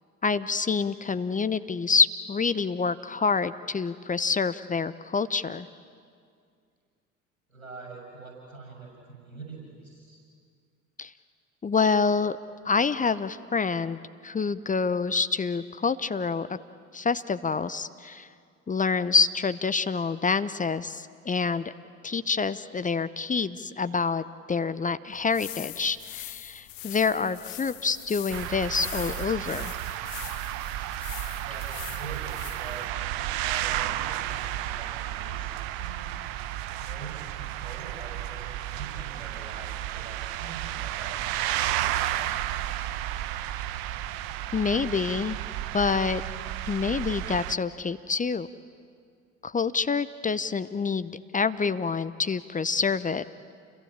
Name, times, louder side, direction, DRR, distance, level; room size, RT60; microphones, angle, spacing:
voice 1, 0.2-5.7 11.0-11.1 11.6-12.4 12.6-14.0 14.2-16.5 16.9-18.3 18.7-21.7 22.0-29.7 44.5-45.4 45.7-46.2 46.7-48.5 49.4-53.2, left 5 dB, 20° left, 13 dB, 0.8 m, -27 dB
voice 2, 7.5-10.2 31.4-32.3 32.6-32.9 33.4-36.0 36.8-42.7 44.1-44.2, right 4 dB, 85° right, 1 dB, 6.6 m, -45 dB
sound 1, 25.1-32.9, left 19 dB, 65° left, 0.7 m, -42 dB
sound 2, 28.3-47.5, right 13 dB, 60° right, 1.0 m, -32 dB
29.5 x 22.5 x 8.7 m, 2.2 s
figure-of-eight pair, 60°, 41 cm